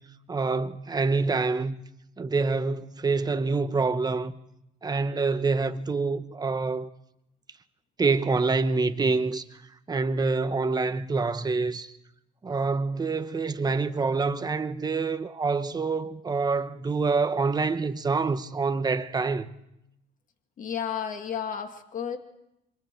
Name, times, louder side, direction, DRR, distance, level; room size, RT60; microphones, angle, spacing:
voice 1, 0.3-1.8 2.2-4.3 4.8-6.9 8.0-9.4 9.9-11.9 12.4-19.5, right 4 dB, 25° right, 1.1 m, -26 dB
voice 2, 20.6-22.2, left 8 dB, 50° left, 2.1 m, -32 dB
27.0 x 24.5 x 4.6 m
cardioid pair, 110°, 17 cm